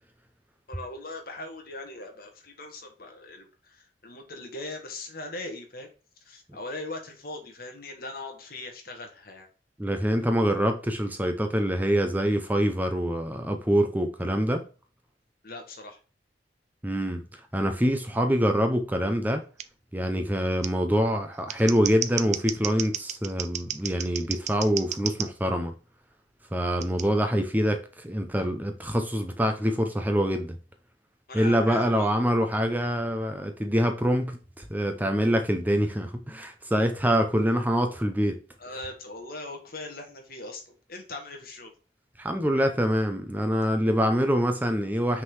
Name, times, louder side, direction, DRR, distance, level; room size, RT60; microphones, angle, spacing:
voice 1, 0.7-5.9 6.2-9.5 15.4-16.0 31.3-32.1 38.6-41.7, left 2 dB, 55° left, 1.8 m, -40 dB
voice 2, 9.8-14.6 16.8-17.2 17.5-19.4 19.9-25.7 26.5-30.6 31.3-38.4 42.2-45.2, equal, 10° right, 0.8 m, -25 dB
Scissors, 19.6-19.7 20.6-20.7 21.3-25.3 26.8-27.0, right 10 dB, 40° right, 0.5 m, -33 dB
6.2 x 3.9 x 4.7 m
head